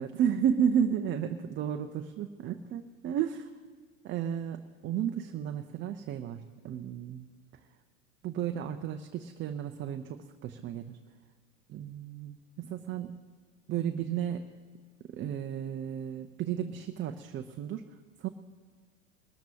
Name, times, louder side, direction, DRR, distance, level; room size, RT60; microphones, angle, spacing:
voice 1, 0.0-3.5 4.0-7.3 8.2-11.0 11.7-13.2 13.7-14.5 15.1-17.8 18.2-18.3, right 8 dB, 30° right, 6 dB, 0.7 m, -33 dB
21.5 x 13.5 x 2.9 m, 1.5 s
hypercardioid pair, 90°, 41 cm